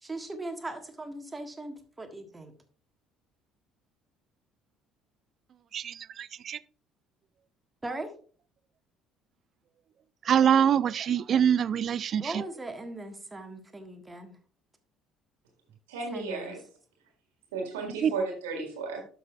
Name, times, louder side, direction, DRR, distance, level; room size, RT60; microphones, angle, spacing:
voice 1, 0.0-2.6 7.8-8.1 12.2-14.4 16.1-16.5, right 2 dB, 15° right, 1.6 m, -39 dB
voice 2, 5.7-6.6 10.2-12.4 18.0-18.1, right 8 dB, 45° right, 0.3 m, -25 dB
voice 3, 15.9-16.6 17.5-19.0, right 4 dB, 70° right, 1.8 m, -34 dB
12.0 x 5.9 x 2.4 m
figure-of-eight pair, 55°, 0 cm